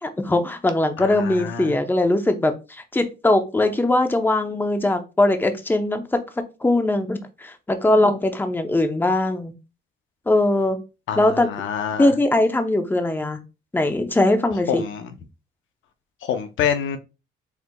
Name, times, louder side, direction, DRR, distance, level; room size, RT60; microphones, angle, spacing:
voice 1, 0.0-6.0 6.6-9.5 10.3-10.8 11.2-11.5 12.0-13.4 13.7-14.8, left 2 dB, 10° left, 0.7 m, -20 dB
voice 2, 1.0-1.7 11.1-12.1 14.7-15.1 16.2-17.0, left 8 dB, 75° left, 0.7 m, -26 dB
4.6 x 3.9 x 2.2 m
cardioid pair, 90°, 20 cm